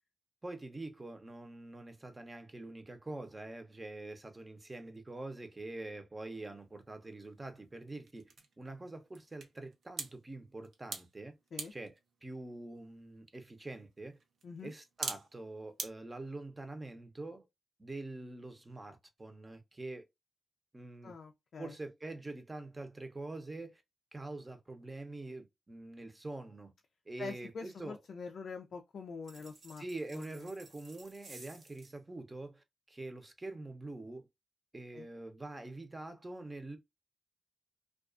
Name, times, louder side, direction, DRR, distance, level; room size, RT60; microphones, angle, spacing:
voice 1, 0.4-11.3 11.7-11.9 12.2-14.2 14.6-17.5 17.8-20.0 20.7-21.2 21.6-23.8 24.1-26.7 27.1-28.0 29.8-34.3 34.7-36.8, right 2 dB, 25° right, 0.7 m, -45 dB
sound 1, 6.5-15.9, right 4 dB, 80° right, 0.5 m, -48 dB
voice 2, 21.0-21.7 27.2-29.8 30.1-30.3 34.9-35.1, left 5 dB, 75° left, 0.3 m, -45 dB
sound 2, 29.2-32.0, right 3 dB, 65° right, 1.0 m, -56 dB
2.3 x 2.3 x 2.4 m
cardioid pair, 60°, 0 cm